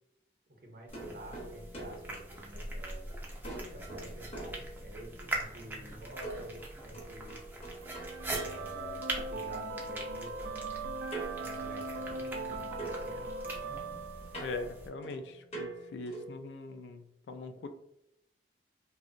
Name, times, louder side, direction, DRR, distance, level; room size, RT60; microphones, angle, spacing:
voice 1, 0.6-3.1 3.7-7.4 8.3-11.0 11.4-13.3 13.7-13.8, equal, 55° right, 0 dB, 0.6 m, -49 dB
sound 1, 0.9-3.0 3.4-5.3 6.2-9.4 11.1-12.5 12.8-16.4, right 3 dB, 35° left, 0.6 m, -45 dB
sound 2, 0.9-14.9, right 1 dB, 10° right, 0.3 m, -42 dB
sound 3, 7.8-14.8, right 3 dB, 85° right, 0.3 m, -40 dB
voice 2, 14.4-17.7, left 3 dB, 80° left, 8 dB, 0.3 m, -41 dB
2.8 x 2.0 x 2.5 m, 0.80 s
head